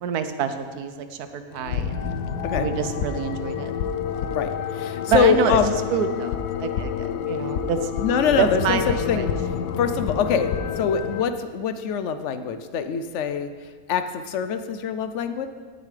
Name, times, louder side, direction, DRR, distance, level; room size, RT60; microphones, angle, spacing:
voice 1, 0.0-2.1 2.5-3.7 5.1-5.6 5.9-7.9 8.4-9.3, right 7 dB, 85° right, 9 dB, 1.2 m, -27 dB
sound 1, 1.5-11.2, left 8 dB, 90° left, 1.1 m, -28 dB
voice 2, 4.3-5.8 8.0-9.3 9.8-13.5 13.9-15.5, left 7 dB, 65° left, 10 dB, 0.7 m, -24 dB
17.5 x 7.0 x 3.3 m, 1.5 s
omnidirectional pair, 1.6 m